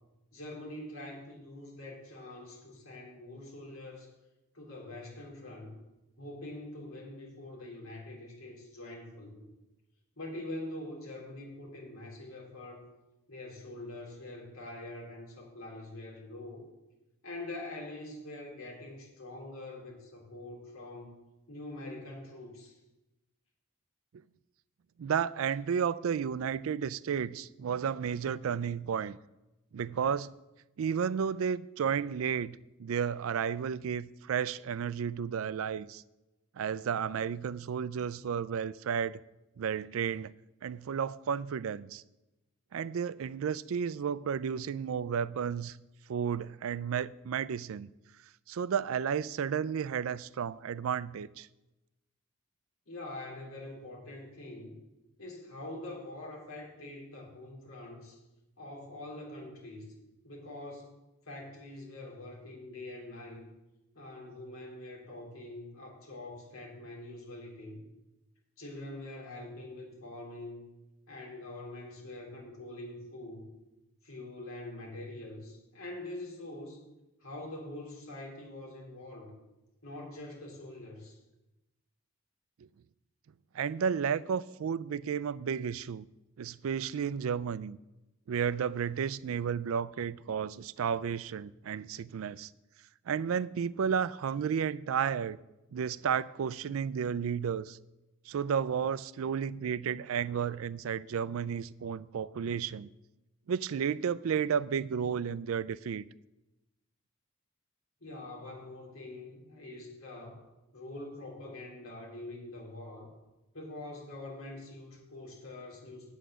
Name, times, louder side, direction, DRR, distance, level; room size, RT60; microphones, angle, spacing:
voice 1, 0.3-4.1 4.5-5.7 6.2-9.5 10.2-12.9 13.3-16.6 17.2-21.1 21.5-22.8 52.9-54.8 55.2-58.2 58.6-59.9 60.2-60.9 61.2-63.4 63.9-67.8 68.6-70.6 71.1-73.5 74.0-76.8 77.2-79.3 79.8-81.2 108.0-110.4 110.7-113.1 113.5-116.1, left 2 dB, 85° left, 3.4 m, -44 dB
voice 2, 25.0-29.2 29.7-30.3 30.8-36.0 36.6-39.2 39.6-40.3 40.6-42.0 42.7-45.8 46.1-47.9 48.5-51.5 83.5-86.1 86.4-87.8 88.3-92.5 93.1-95.4 95.7-97.8 98.3-102.9 103.5-106.0, right 7 dB, 85° right, 0.4 m, -32 dB
8.9 x 8.1 x 6.2 m
head